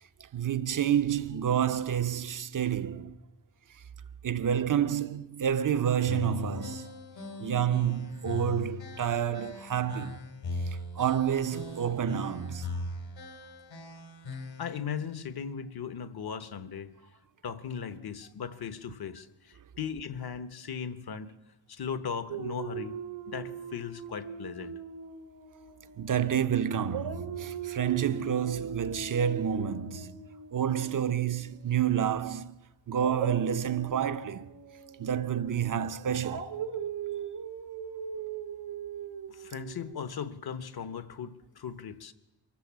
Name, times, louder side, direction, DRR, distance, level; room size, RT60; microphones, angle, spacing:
voice 1, 0.3-3.2 4.2-6.9 7.4-10.2 11.0-12.7 26.0-30.2 30.5-32.6 32.9-34.5 35.0-36.6, right 9 dB, 45° right, 0.7 m, -29 dB
sound 1, 6.1-14.8, left 4 dB, 80° left, 4.0 m, -39 dB
voice 2, 14.6-16.9 17.4-21.3 21.7-22.9 23.3-24.7 39.3-42.1, left 7 dB, 55° left, 1.1 m, -38 dB
Dog, 22.3-26.5 26.8-31.8 32.9-39.9, right 7 dB, 80° right, 1.5 m, -40 dB
24.0 x 14.5 x 7.5 m
wide cardioid pair, 155°, 45 cm